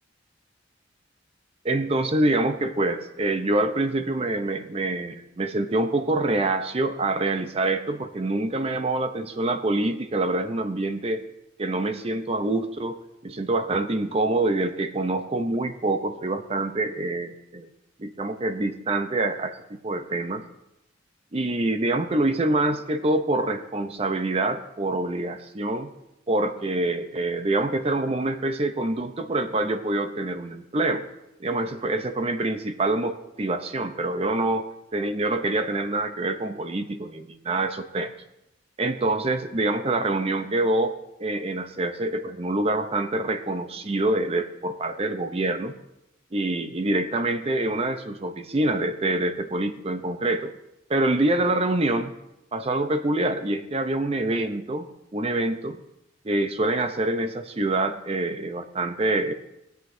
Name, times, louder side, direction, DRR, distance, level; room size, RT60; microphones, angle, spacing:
voice 1, 1.6-11.2 11.6-17.7 18.0-20.4 21.3-25.9 26.3-31.1 31.4-34.6 34.9-38.1 38.8-45.7 46.3-50.5 50.9-52.1 52.5-54.9 55.1-55.8 56.2-59.3, right 2 dB, 30° right, 9 dB, 0.6 m, -26 dB
18.5 x 7.9 x 2.6 m, 0.90 s
head